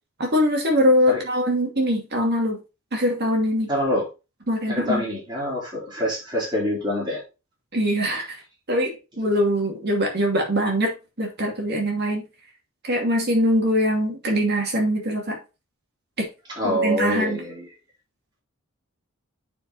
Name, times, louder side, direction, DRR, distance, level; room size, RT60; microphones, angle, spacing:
voice 1, 0.2-2.6 2.9-3.7 4.5-5.0 7.7-8.3 8.7-12.2 12.9-15.4 16.2-16.3 16.6-17.4, equal, 50° right, 1 dB, 2.4 m, -22 dB
voice 2, 3.7-4.0 4.7-7.2 16.6-17.7, left 1 dB, 20° right, -5 dB, 4.1 m, -25 dB
8.6 x 4.9 x 4.1 m, 0.29 s
head